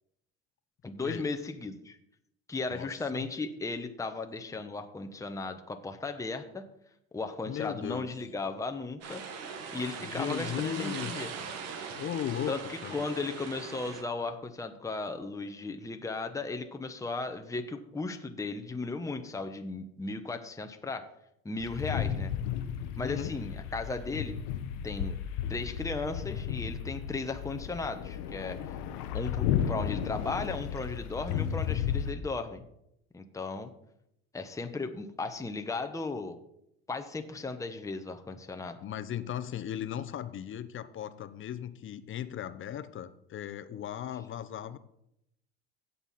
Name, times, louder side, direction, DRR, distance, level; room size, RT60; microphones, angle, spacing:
voice 1, 0.8-2.0 2.5-6.7 7.1-9.2 9.7-11.3 12.5-21.1 21.4-22.3 23.0-24.4 24.8-25.1 25.5-28.6 29.1-32.6 33.1-33.7 34.3-36.4 36.9-38.8, left 3 dB, 10° left, 6 dB, 1.0 m, -36 dB
voice 2, 2.7-3.2 7.4-8.1 10.0-11.1 12.0-13.0 23.0-23.3 38.8-44.8, left 10 dB, 40° left, 12 dB, 0.9 m, -37 dB
sound 1, 9.0-14.0, right 6 dB, 55° right, 1.8 m, -40 dB
sound 2, 21.6-32.1, left 9 dB, 70° left, 1.1 m, -33 dB
16.5 x 5.6 x 4.3 m, 0.78 s
hypercardioid pair, 80°, 30 cm